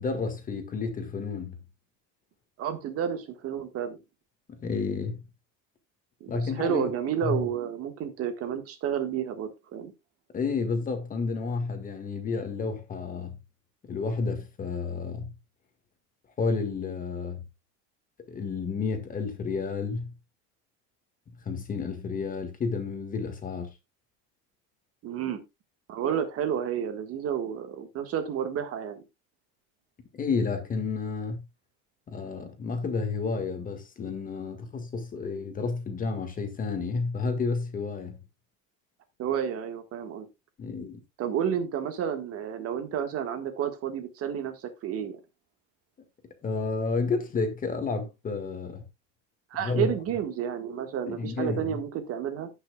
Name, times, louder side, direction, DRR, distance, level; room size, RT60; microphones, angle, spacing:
voice 1, 0.0-1.6 4.5-5.2 6.3-6.9 7.2-7.4 10.3-13.4 13.8-15.3 16.4-17.4 18.3-20.1 21.4-23.7 30.1-31.4 32.1-38.2 40.6-41.0 46.4-48.8 49.6-49.9 51.1-51.8, left 4 dB, 25° left, 1.8 m, -31 dB
voice 2, 2.6-4.0 6.2-9.9 25.0-25.4 25.9-29.0 39.2-40.3 41.2-45.2 49.5-52.5, right 9 dB, 45° right, 1.7 m, -31 dB
17.0 x 6.0 x 2.3 m
cardioid pair, 150°, 33 cm